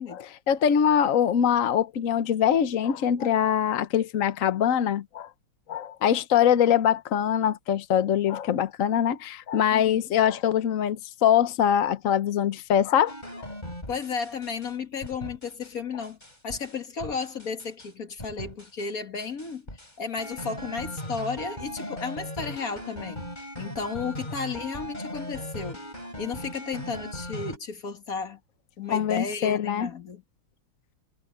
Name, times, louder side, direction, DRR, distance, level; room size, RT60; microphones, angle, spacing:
voice 1, 0.0-5.3 5.7-13.5 28.9-29.9, left 9 dB, 60° left, 0.8 m, -23 dB
voice 2, 9.7-10.0 13.9-16.2 16.4-19.7 20.0-23.3 23.6-25.8 26.2-28.4 28.8-30.2, left 5 dB, 40° left, 2.3 m, -33 dB
sound 1, 13.1-14.7 15.0-15.7 16.0-17.9 18.2-18.9 19.2-27.6, equal, 20° left, 7.7 m, -39 dB
omnidirectional pair, 2.4 m